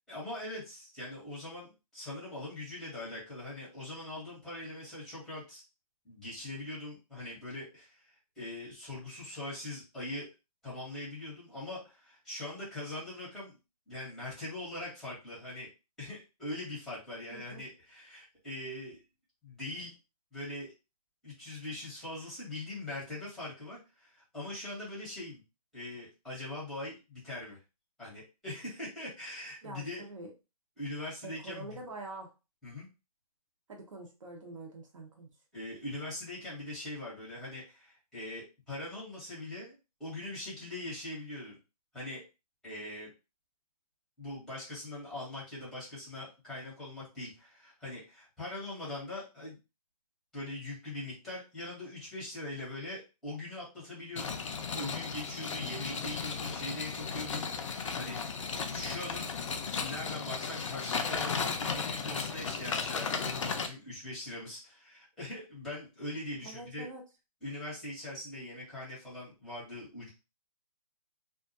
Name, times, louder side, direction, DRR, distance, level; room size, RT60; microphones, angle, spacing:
voice 1, 0.1-5.6 6.0-8.1 8.4-10.3 10.6-13.6 13.9-15.7 16.0-19.0 19.4-19.9 20.3-20.7 21.2-25.4 25.7-27.6 28.0-30.1 30.8-31.8 32.6-32.9 35.5-39.7 40.0-41.6 41.9-42.2 42.6-43.1 44.2-49.6 50.3-54.5 54.7-58.2 58.7-66.9 67.4-70.1, left 1 dB, ahead, -8 dB, 0.8 m, -42 dB
voice 2, 17.3-17.6 29.6-30.3 31.2-32.3 33.7-35.3 66.4-67.0, right 2 dB, 55° right, 1 dB, 0.7 m, -45 dB
sound 1, 54.1-63.7, left 5 dB, 55° left, 0.4 m, -35 dB
2.3 x 2.1 x 2.6 m, 0.28 s
hypercardioid pair, 165°, 20 cm